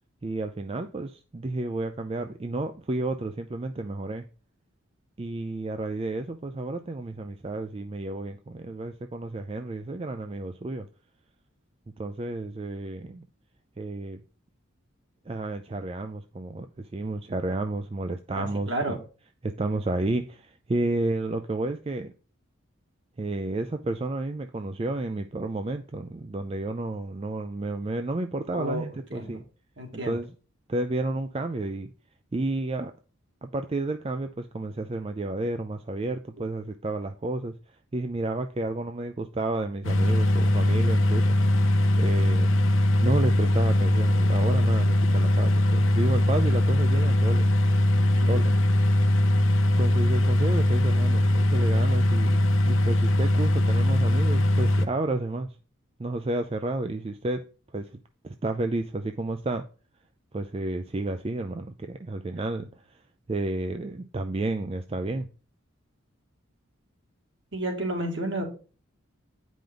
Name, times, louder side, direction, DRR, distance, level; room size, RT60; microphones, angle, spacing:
voice 1, 0.2-4.3 5.2-10.9 12.0-13.3 13.8-14.2 15.3-19.0 19.4-22.1 23.2-29.4 29.9-30.3 30.7-31.9 32.3-32.9 33.4-37.5 37.9-41.4 42.0-42.6 43.0-47.5 48.3-48.5 49.8-52.4 52.6-55.5 56.0-57.5 57.7-57.9 58.2-59.6 60.3-63.0 63.3-65.3, right 2 dB, 25° right, 0.4 m, -31 dB
voice 2, 18.3-19.0 28.5-28.8 29.1-29.4 29.8-30.2 47.9-48.5 67.5-68.4, right 1 dB, 60° right, 2.2 m, -31 dB
sound 1, 39.8-54.9, left 1 dB, 70° left, 0.9 m, -21 dB
9.1 x 5.1 x 3.8 m
head